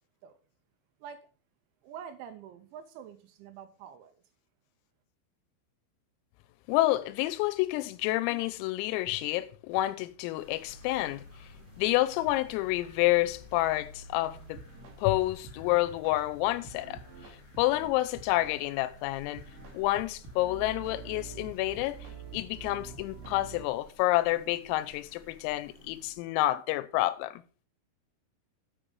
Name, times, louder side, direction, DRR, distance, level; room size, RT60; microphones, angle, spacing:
voice 1, 1.8-4.1, right 8 dB, 85° right, 2.7 m, -46 dB
voice 2, 6.7-11.2 11.8-14.6 15.0-17.0 17.6-19.4 19.7-22.0 22.3-27.4, left 17 dB, 85° left, 3.2 m, -29 dB
sound 1, 10.3-26.1, left 1 dB, 30° right, 2.4 m, -56 dB
sound 2, 10.7-22.0, left 1 dB, 65° left, 2.1 m, -55 dB
sound 3, 13.7-13.8 14.2-14.3 14.5-15.0 15.4-16.1 16.6-18.6 19.0-19.1 19.3-23.7, right 6 dB, 60° right, 2.3 m, -47 dB
7.3 x 7.2 x 5.2 m
omnidirectional pair, 6.0 m